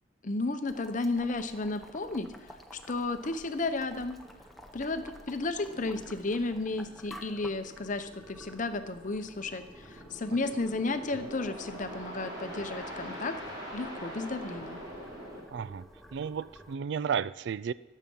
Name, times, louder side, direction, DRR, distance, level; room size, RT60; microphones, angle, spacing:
voice 1, 0.2-4.2 4.7-13.4 13.7-14.8, left 3 dB, 40° left, 9 dB, 0.8 m, -33 dB
Boiling, 0.7-16.7, equal, ahead, 0.9 m, -51 dB
sound 1, 5.6-15.4, equal, 20° right, 3.6 m, -44 dB
voice 2, 15.5-17.7, right 7 dB, 60° right, 18 dB, 0.3 m, -33 dB
21.5 x 7.5 x 5.4 m, 1.1 s
head